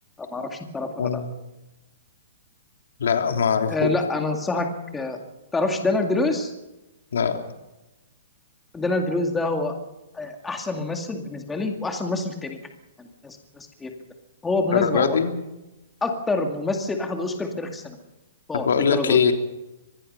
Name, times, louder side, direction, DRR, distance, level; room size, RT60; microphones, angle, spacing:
voice 1, 0.2-1.1 3.7-5.2 5.5-6.5 8.7-9.7 10.1-12.6 13.0-13.9 14.4-15.2 16.0-18.0 18.5-19.2, left 2 dB, 5° left, 4 dB, 2.1 m, -26 dB
voice 2, 1.0-1.3 3.0-3.9 7.1-7.4 14.7-15.3 18.6-19.3, left 6 dB, 90° left, 5 dB, 3.2 m, -21 dB
24.5 x 20.5 x 5.5 m, 0.97 s
hypercardioid pair, 170°, 0 cm